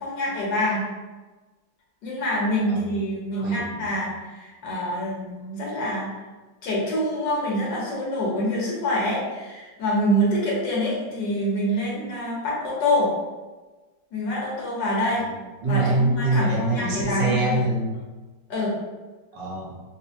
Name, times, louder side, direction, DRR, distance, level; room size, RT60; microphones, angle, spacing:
voice 1, 0.0-0.9 2.0-6.1 6.6-13.1 14.1-15.2 15.6-17.6 18.5-18.8, equal, 80° left, -5 dB, 1.7 m, -26 dB
voice 2, 3.4-3.9 15.1-18.0 19.3-19.8, right 2 dB, 85° right, -5 dB, 1.7 m, -25 dB
4.6 x 2.2 x 2.7 m, 1.2 s
omnidirectional pair, 1.9 m